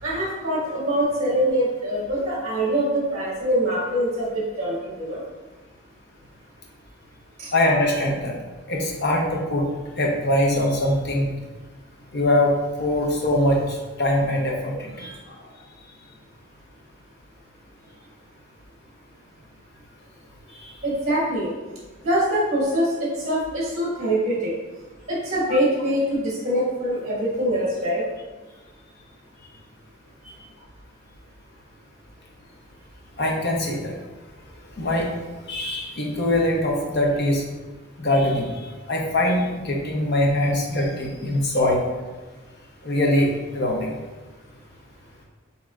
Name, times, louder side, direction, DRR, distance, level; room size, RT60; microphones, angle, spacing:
voice 1, 0.0-5.2 7.4-7.5 15.0-15.2 20.8-21.5 22.0-24.5 25.1-28.0, equal, 30° right, -7 dB, 1.5 m, -24 dB
voice 2, 7.5-8.3 8.7-9.7 10.0-11.3 12.1-14.9 25.5-25.6 33.2-33.9 34.8-35.1 35.5-37.4 38.0-38.5 38.9-41.8 42.8-43.9, left 1 dB, 50° left, -1 dB, 0.8 m, -22 dB
7.5 x 2.8 x 2.4 m, 1.3 s
head